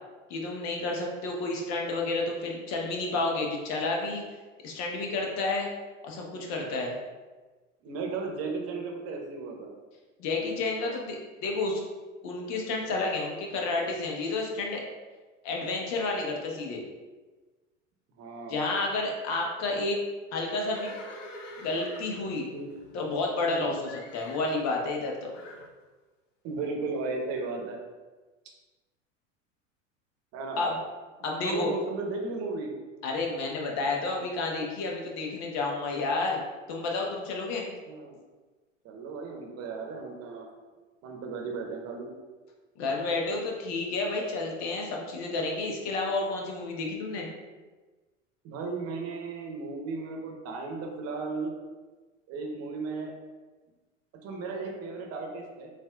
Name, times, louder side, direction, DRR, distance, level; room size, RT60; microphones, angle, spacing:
voice 1, 0.3-4.2 4.6-5.7 6.0-6.9 10.2-11.8 12.2-14.8 15.4-16.8 18.5-20.0 20.3-20.9 21.6-22.4 22.9-25.3 30.6-30.8 31.2-31.7 33.0-36.4 36.7-37.6 42.8-47.3, left 3 dB, 45° left, 0 dB, 1.1 m, -30 dB
voice 2, 7.8-9.7 18.2-18.8 22.5-22.7 23.5-23.8 26.4-27.8 30.3-30.7 31.4-32.7 37.9-38.2 38.8-40.5 41.0-42.1 48.4-51.5 52.3-53.1 54.2-55.7, right 3 dB, 40° right, 1 dB, 1.0 m, -35 dB
Livestock farm animals working animals, 20.4-23.5 23.8-24.5 25.3-25.7, left 1 dB, 70° left, 0.8 m, -45 dB
6.9 x 2.5 x 2.4 m, 1.3 s
figure-of-eight pair, 80°, 39 cm